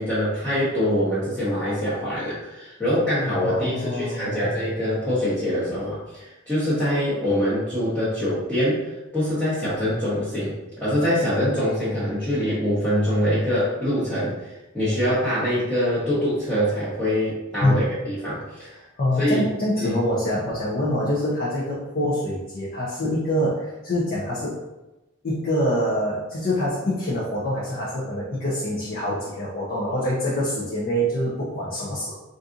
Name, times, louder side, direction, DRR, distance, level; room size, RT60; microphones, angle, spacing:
voice 1, 0.0-8.8 9.1-18.7 19.2-19.4 19.8-19.9, equal, 5° left, -13 dB, 0.8 m, -24 dB
voice 2, 3.4-4.5 17.6-17.9 19.0-24.6 25.2-32.1, equal, 45° left, -6 dB, 0.6 m, -25 dB
4.0 x 2.6 x 2.4 m, 1.0 s
head